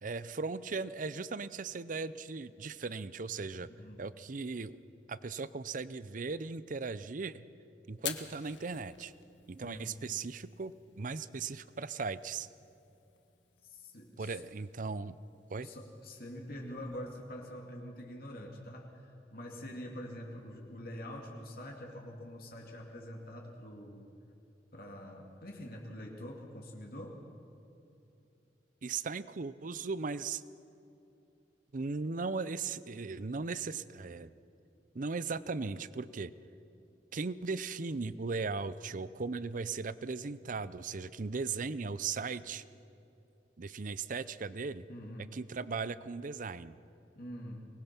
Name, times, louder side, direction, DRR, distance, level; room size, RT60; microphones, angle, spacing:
voice 1, 0.0-3.7 4.0-4.8 5.1-7.4 7.9-9.1 9.5-12.5 14.2-15.2 15.5-15.7 28.8-30.4 31.7-34.3 34.9-36.3 37.1-42.6 43.6-44.9 45.3-46.8, right 4 dB, 45° right, 16 dB, 0.6 m, -37 dB
Fire, 7.9-17.1, left 10 dB, 90° left, 1.4 m, -50 dB
voice 2, 13.6-14.3 15.6-24.0 24.7-27.2 44.9-45.3 47.2-47.7, equal, 55° left, 0 dB, 2.4 m, -45 dB
24.0 x 20.0 x 6.0 m, 2.7 s
head